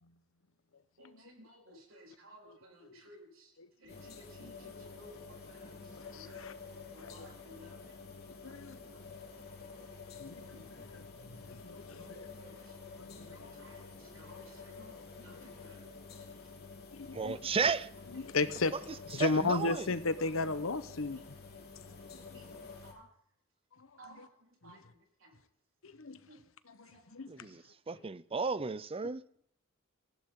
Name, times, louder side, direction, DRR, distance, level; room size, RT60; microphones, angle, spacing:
voice 1, 1.0-3.5 3.8-5.7 6.2-6.4 6.9-7.8 8.4-8.6 10.5-10.6 12.0-12.1 12.4-12.6 13.3-13.8 14.1-15.8 22.3-22.5 22.8-23.0 24.0-24.3 24.6-24.8 25.2-25.3 26.3-26.4, equal, 85° right, 4.2 m, -56 dB
voice 2, 3.6-4.0 5.0-5.1 6.0-6.5 7.0-7.3 8.4-8.8 10.2-10.5 10.9-12.3 13.0-13.5 15.4-15.5 16.9-17.4 18.1-18.7 19.0-21.2 22.1-22.2 23.8-24.3 24.6-24.8 25.8-26.2 26.7-27.3, left 3 dB, 85° left, 1.0 m, -36 dB
sound 1, 3.9-22.9, left 4 dB, 50° left, 3.5 m, -50 dB
voice 3, 17.1-17.9 19.2-19.9 27.3-29.2, right 5 dB, 30° right, 0.6 m, -34 dB
18.5 x 15.5 x 3.8 m
head